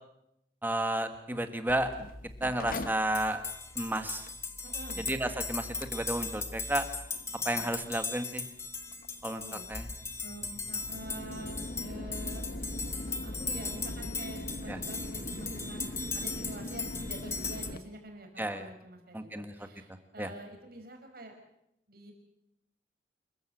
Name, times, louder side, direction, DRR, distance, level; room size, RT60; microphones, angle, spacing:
voice 1, 0.6-1.9 2.4-3.4 3.7-4.3 5.1-6.9 7.4-8.4 9.2-9.4 9.7-9.9 14.7-14.8 18.4-18.7 19.1-19.5 20.2-20.3, right 1 dB, 10° right, 8 dB, 1.7 m, -32 dB
Mechanical fan, 1.7-17.8, left 1 dB, 50° left, 1.2 m, -42 dB
sound 1, 3.1-17.7, left 4 dB, 15° left, 1.5 m, -38 dB
voice 2, 4.6-5.0 9.3-9.7 10.2-12.4 13.1-21.3 21.9-22.1, right 1 dB, 55° right, 3 dB, 5.3 m, -47 dB
27.0 x 15.0 x 8.0 m, 0.81 s
head